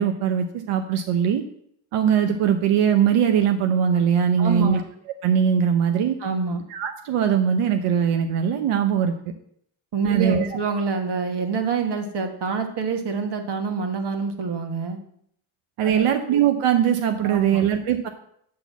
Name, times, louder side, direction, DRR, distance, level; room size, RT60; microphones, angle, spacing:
voice 1, 0.0-1.4 1.9-4.8 5.2-6.2 6.7-9.3 10.0-10.5 15.8-18.1, right 8 dB, 90° right, 6 dB, 0.9 m, -21 dB
voice 2, 4.4-4.8 6.2-6.6 9.9-15.0 15.8-16.1 17.2-17.6, right 5 dB, 50° right, 4 dB, 1.5 m, -26 dB
8.7 x 4.0 x 7.2 m, 0.68 s
cardioid pair, 105°, 50 cm